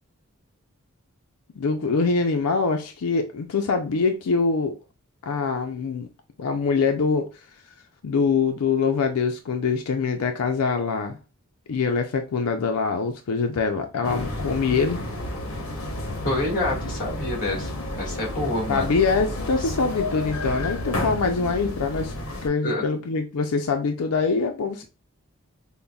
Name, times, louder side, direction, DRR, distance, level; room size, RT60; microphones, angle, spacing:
voice 1, 1.6-4.8 5.2-6.1 6.4-7.3 8.0-11.2 11.7-15.0 18.7-22.1 22.4-24.8, left 4 dB, 90° left, 0.4 m, -24 dB
sound 1, 14.0-22.5, left 1 dB, 70° left, 0.8 m, -31 dB
voice 2, 16.2-18.9 19.6-19.7 22.6-22.8, left 1 dB, 40° left, 1.6 m, -27 dB
5.3 x 2.1 x 2.3 m
head